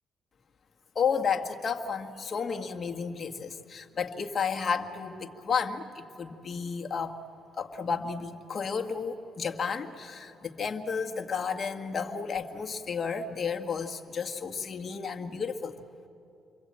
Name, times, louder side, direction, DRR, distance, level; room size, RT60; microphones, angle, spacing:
voice 1, 1.0-7.2 7.6-15.8, left 6 dB, 45° left, 4 dB, 1.7 m, -32 dB
28.0 x 23.0 x 8.8 m, 2.7 s
cardioid pair, 90°, 0 cm